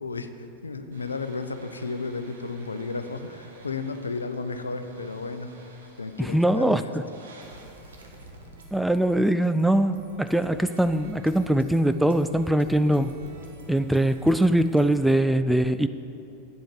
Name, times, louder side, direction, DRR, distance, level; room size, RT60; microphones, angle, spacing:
voice 1, 0.0-6.9 7.8-8.1, left 3 dB, 75° left, 9 dB, 0.6 m, -34 dB
sound 1, 0.9-15.2, right 2 dB, 65° right, 1.5 m, -47 dB
voice 2, 6.2-7.0 8.7-13.1 13.7-15.9, right 1 dB, ahead, 10 dB, 0.3 m, -22 dB
8.2 x 7.7 x 8.7 m, 2.9 s
figure-of-eight pair, 90°, 0 cm